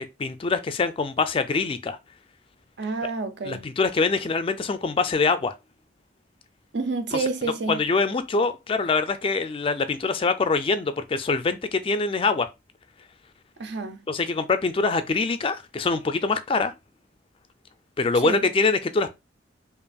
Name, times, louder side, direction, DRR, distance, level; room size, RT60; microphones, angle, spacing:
voice 1, 0.0-2.0 3.0-3.1 3.5-5.5 7.1-7.2 7.7-12.5 14.1-16.7 18.0-19.1, left 4 dB, 30° left, 0.3 m, -24 dB
voice 2, 2.8-3.7 6.7-7.8 13.6-14.0 18.2-18.5, right 3 dB, 60° right, 0.6 m, -29 dB
5.2 x 2.5 x 2.3 m
head